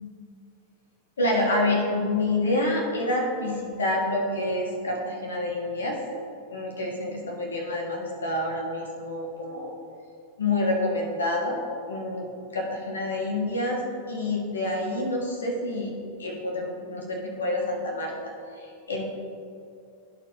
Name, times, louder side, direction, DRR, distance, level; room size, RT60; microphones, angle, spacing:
voice 1, 1.2-6.0 6.5-9.7 10.4-11.6 11.9-13.8 14.1-15.9 16.2-18.1 18.5-19.0, left 2 dB, 70° left, 0 dB, 1.4 m, -27 dB
13.0 x 4.4 x 2.9 m, 2.5 s
figure-of-eight pair, 90°, 0 cm